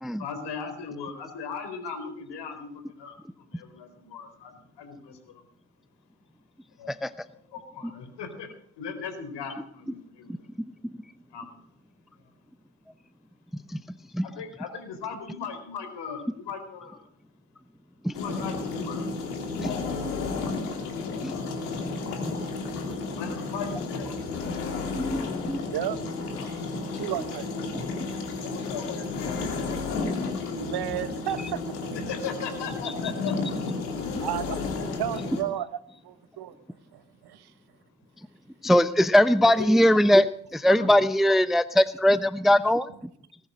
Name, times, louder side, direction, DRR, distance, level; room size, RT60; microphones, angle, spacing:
voice 1, 0.2-5.4 6.8-8.5 8.8-10.5 11.3-11.6 14.2-17.0 18.1-19.1 23.1-24.1 28.4-30.0 32.1-33.8 39.4-39.7 40.7-40.9, left 6 dB, 65° left, 4.2 m, -38 dB
sound 1, 18.1-35.4, left 4 dB, 85° left, 2.7 m, -32 dB
voice 2, 24.9-25.6 38.6-40.3 40.5-42.9, left 1 dB, ahead, 0.8 m, -21 dB
voice 3, 25.7-26.6 27.0-27.5 30.5-32.1 34.2-34.6 35.0-35.7 36.0-36.5 36.9-37.5, right 12 dB, 55° right, 1.4 m, -33 dB
19.5 x 11.0 x 6.3 m
hypercardioid pair, 45°, 45 cm